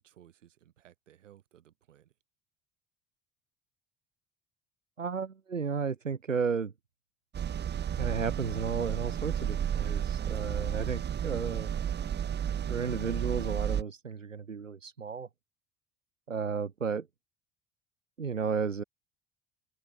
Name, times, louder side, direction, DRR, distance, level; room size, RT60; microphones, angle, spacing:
voice 1, 0.0-2.1, right 11 dB, 75° right, 4.9 m, -59 dB
voice 2, 5.0-6.7 8.0-11.7 12.7-15.3 16.3-17.1 18.2-18.8, right 6 dB, 90° right, 0.7 m, -33 dB
sound 1, 7.3-13.8, right 9 dB, 30° right, 1.0 m, -32 dB
figure-of-eight pair, 60°, 37 cm